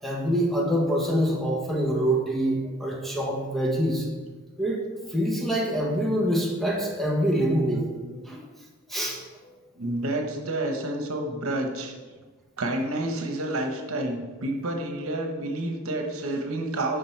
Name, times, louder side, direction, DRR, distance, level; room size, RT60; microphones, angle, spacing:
voice 1, 0.0-4.1 4.6-8.4 8.9-9.5, equal, ahead, -2 dB, 1.1 m, -26 dB
voice 2, 9.8-11.9 12.6-17.0, right 1 dB, 80° right, 3 dB, 1.0 m, -29 dB
7.5 x 5.3 x 4.5 m, 1.3 s
head